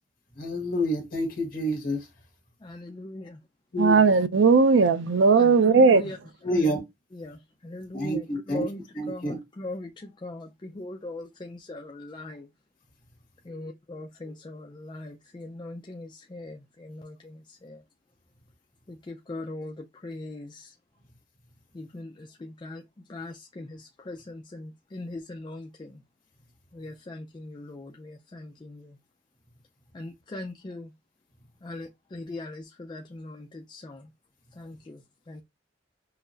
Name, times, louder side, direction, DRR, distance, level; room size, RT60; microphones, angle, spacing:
voice 1, 0.4-2.1 3.7-4.0 6.4-6.8 7.9-8.6 8.9-9.4, equal, 50° left, 1.5 m, -28 dB
voice 2, 2.6-3.4 5.3-6.2 6.5-6.8 7.1-8.8 9.1-12.5 13.5-17.8 18.9-20.7 21.7-26.0 26.7-29.0 29.9-30.9 31.6-34.1 34.5-35.4, left 2 dB, 25° left, 0.4 m, -40 dB
voice 3, 3.8-6.0, right 4 dB, 80° right, 0.5 m, -18 dB
5.6 x 2.0 x 2.6 m
head